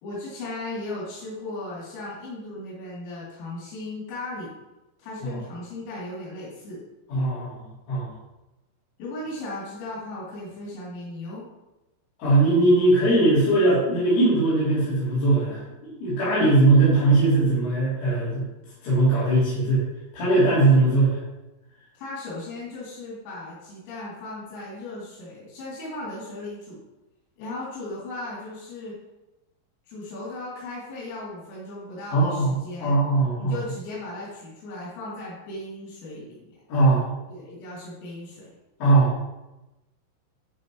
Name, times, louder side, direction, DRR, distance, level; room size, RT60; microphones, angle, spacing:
voice 1, 0.0-4.5 5.0-6.8 9.0-11.4 22.0-26.8 27.4-29.0 29.8-33.0 33.4-36.4 37.3-38.5, left 2 dB, 90° left, -8 dB, 5.7 m, -36 dB
voice 2, 7.1-8.1 12.2-18.5 18.8-19.8 20.1-21.2 32.1-32.5 32.8-33.5 36.7-37.1 38.8-39.2, right 2 dB, 70° left, -11 dB, 5.8 m, -20 dB
13.0 x 6.3 x 3.2 m, 0.98 s
omnidirectional pair, 5.8 m